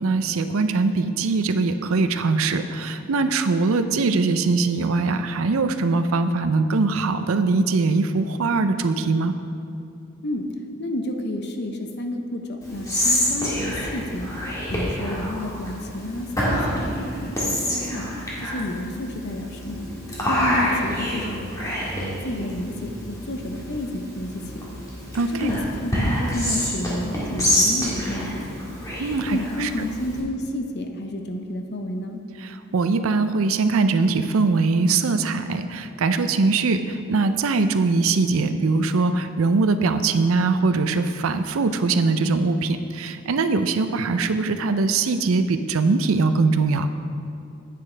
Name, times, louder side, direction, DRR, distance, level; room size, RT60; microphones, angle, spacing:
voice 1, 0.0-9.3 25.1-25.5 29.0-29.7 32.4-46.9, right 3 dB, 80° right, 10 dB, 0.5 m, -22 dB
voice 2, 10.8-14.3 14.7-18.1 18.4-19.9 20.3-21.4 22.0-24.7 25.3-28.7 29.3-32.2, left 1 dB, 55° left, 4 dB, 0.8 m, -30 dB
Whispering, 12.6-30.2, equal, 15° left, 1.7 m, -27 dB
9.7 x 8.6 x 3.3 m, 2.6 s
head